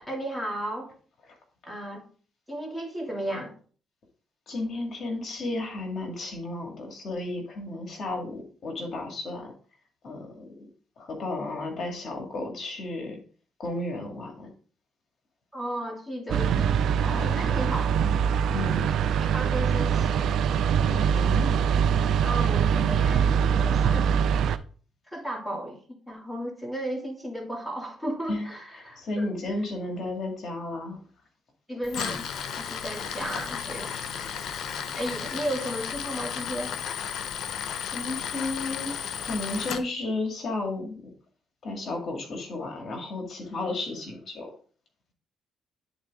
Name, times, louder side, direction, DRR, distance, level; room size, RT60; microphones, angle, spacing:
voice 1, 0.1-0.9 1.6-2.0 2.5-3.5 15.5-18.1 19.2-20.3 22.2-24.6 25.1-25.8 26.1-29.3 31.7-32.3 32.5-34.0 34.9-36.7, right 1 dB, ahead, -1 dB, 2.5 m, -34 dB
voice 2, 4.5-9.5 10.0-10.7 11.0-13.2 13.6-14.5 17.2-17.6 18.5-18.9 20.8-21.5 28.3-28.5 29.0-31.0 37.9-38.9 39.2-41.1 41.6-44.5, left 2 dB, 55° left, 2 dB, 1.9 m, -33 dB
sound 1, 16.3-24.6, right 7 dB, 75° right, 0.5 m, -23 dB
Tools, 31.8-39.8, left 8 dB, 70° left, 0.7 m, -34 dB
10.5 x 4.0 x 3.6 m, 0.42 s
cardioid pair, 90°, 0 cm